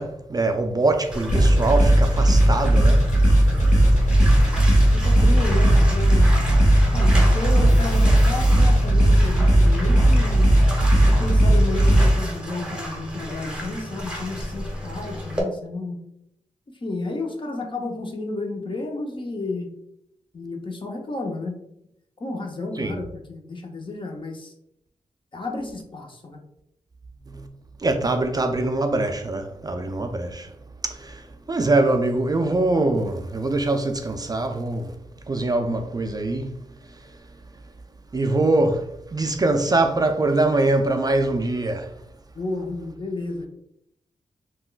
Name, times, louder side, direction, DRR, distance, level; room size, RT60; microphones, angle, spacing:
voice 1, 0.0-3.0 22.8-22.9 27.8-30.5 30.8-31.1 31.5-34.9 35.3-36.5 38.1-41.9, right 2 dB, 30° right, 0.3 m, -23 dB
Bathtub (filling or washing), 1.1-15.4, equal, 5° right, 0.9 m, -31 dB
sound 1, 1.3-12.1, right 1 dB, 70° left, 0.9 m, -17 dB
voice 2, 4.3-6.3 6.9-10.5 11.0-16.0 16.8-19.7 20.3-21.6 22.2-24.5 25.3-26.4 42.3-43.5, left 2 dB, 40° left, 0.7 m, -32 dB
3.5 x 2.2 x 2.3 m
cardioid pair, 45°, 13 cm